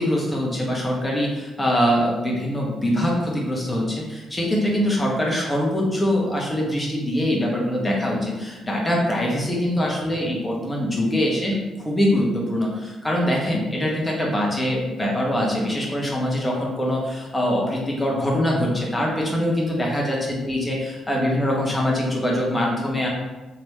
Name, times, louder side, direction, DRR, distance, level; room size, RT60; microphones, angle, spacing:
voice 1, 0.0-23.1, equal, 15° left, -3 dB, 1.1 m, -23 dB
3.1 x 2.9 x 3.1 m, 1.1 s
figure-of-eight pair, 40°, 0 cm